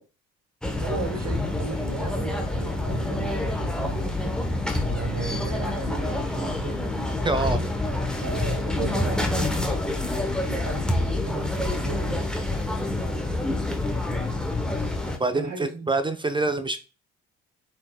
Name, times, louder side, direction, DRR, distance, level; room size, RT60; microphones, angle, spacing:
sound 1, 0.6-15.2, left 2 dB, ahead, 0.8 m, -27 dB
voice 1, 0.8-4.4 4.7-6.8 8.2-9.9 10.5-12.3 15.3-15.9, right 5 dB, 45° right, 0.8 m, -35 dB
voice 2, 7.2-7.6 15.2-16.8, right 3 dB, 15° right, 0.4 m, -25 dB
4.1 x 3.8 x 2.2 m
figure-of-eight pair, 45°, 39 cm